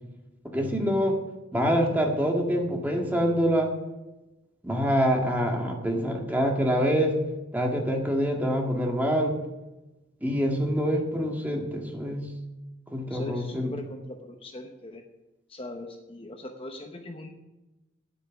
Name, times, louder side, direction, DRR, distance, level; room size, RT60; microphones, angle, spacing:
voice 1, 0.5-1.2 1.5-3.7 4.6-7.2 7.5-9.3 10.2-12.3 12.9-13.7, equal, 10° right, 0 dB, 1.7 m, -25 dB
voice 2, 13.1-15.0 15.5-17.3, left 1 dB, 30° left, 4 dB, 0.9 m, -40 dB
9.0 x 8.9 x 7.0 m, 1.0 s
head